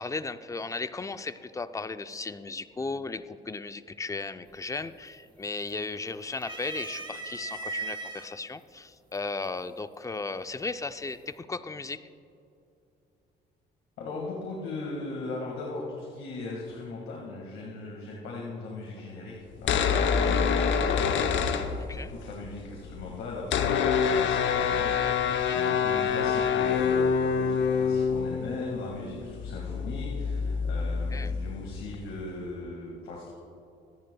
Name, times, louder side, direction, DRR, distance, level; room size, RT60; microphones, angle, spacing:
voice 1, 0.0-12.0 21.8-22.1 25.3-25.6 31.1-31.3, left 3 dB, 15° left, 12 dB, 0.5 m, -36 dB
sound 1, 4.5-4.9 5.2-5.9 6.3-8.3 9.1-9.2 10.5-10.9, right 3 dB, 25° right, 1.3 m, -38 dB
voice 2, 14.0-33.3, left 2 dB, 90° left, -2 dB, 1.8 m, -39 dB
sound 2, 19.5-22.3 22.5-22.6 22.8-32.2, left 6 dB, 70° left, 0.8 m, -26 dB
24.5 x 9.4 x 2.3 m, 2.6 s
cardioid pair, 90°, 20 cm